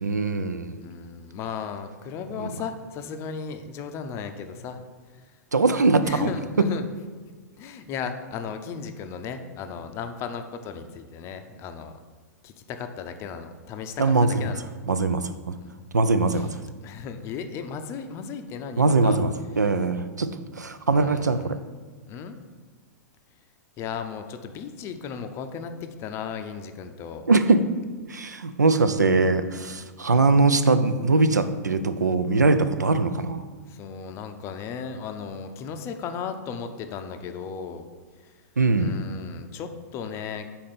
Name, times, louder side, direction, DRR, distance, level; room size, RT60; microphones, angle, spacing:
voice 1, 0.0-0.8 2.4-2.5 5.5-6.3 14.0-14.4 14.9-15.2 15.9-16.5 18.8-19.3 19.6-20.3 20.6-21.6 27.3-27.6 28.1-33.4 38.6-39.0, right 3 dB, 80° right, 11 dB, 0.4 m, -21 dB
voice 2, 0.8-4.8 5.1-5.4 6.0-6.9 7.6-11.9 12.4-14.7 15.6-15.9 16.3-16.5 16.8-19.2 19.6-19.7 20.9-21.6 22.1-22.4 23.8-27.3 33.5-37.9 38.2-38.3 38.8-40.5, left 6 dB, 30° left, 7 dB, 0.5 m, -35 dB
4.9 x 4.2 x 5.7 m, 1.5 s
figure-of-eight pair, 105°, 9 cm